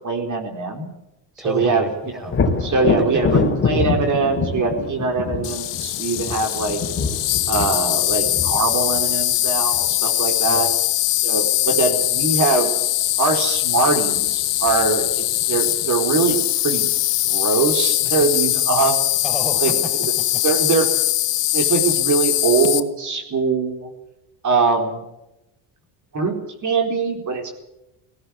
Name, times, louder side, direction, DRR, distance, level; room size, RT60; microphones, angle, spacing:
voice 1, 0.0-0.9 1.4-1.9 2.1-2.3 2.6-6.8 7.5-10.7 11.2-12.7 13.2-16.9 17.3-19.0 19.6-19.7 20.4-20.9 21.5-23.9 24.4-25.0 26.1-26.3 26.6-27.5, right 4 dB, 40° right, 3 dB, 4.3 m, -22 dB
voice 2, 1.4-2.7 3.0-3.4 10.5-10.7 19.2-20.4, equal, ahead, 6 dB, 4.2 m, -32 dB
Thunder, 2.3-10.0 13.6-13.7 14.2-15.1, left 4 dB, 25° left, 3.9 m, -25 dB
Insect, 5.4-22.8, left 16 dB, 65° left, 1.4 m, -21 dB
18.5 x 16.5 x 8.5 m, 0.91 s
cardioid pair, 110°, 47 cm